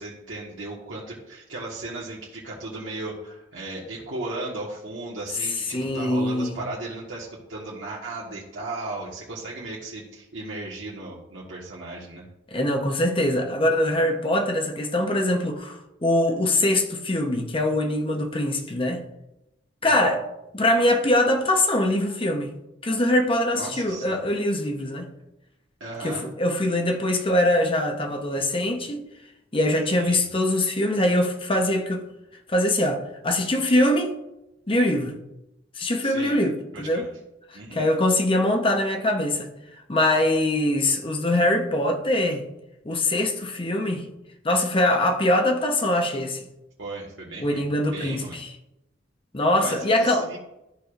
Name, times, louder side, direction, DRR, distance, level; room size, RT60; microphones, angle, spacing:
voice 1, 0.0-12.3 19.8-20.0 23.5-24.2 25.8-26.3 30.0-30.3 36.0-36.4 36.7-37.1 37.5-37.9 46.8-47.6 47.9-48.4 49.6-50.4, right 2 dB, 85° right, 1.4 m, -36 dB
voice 2, 5.7-6.6 12.5-19.0 19.8-20.2 20.5-22.5 22.8-25.1 26.0-29.0 29.5-32.0 32.5-34.1 34.7-35.2 35.8-37.1 37.5-39.5 39.9-42.4 42.8-44.1 44.4-46.4 47.4-48.5 49.3-50.2, left 1 dB, 30° left, 0.8 m, -23 dB
13.0 x 4.8 x 2.5 m
head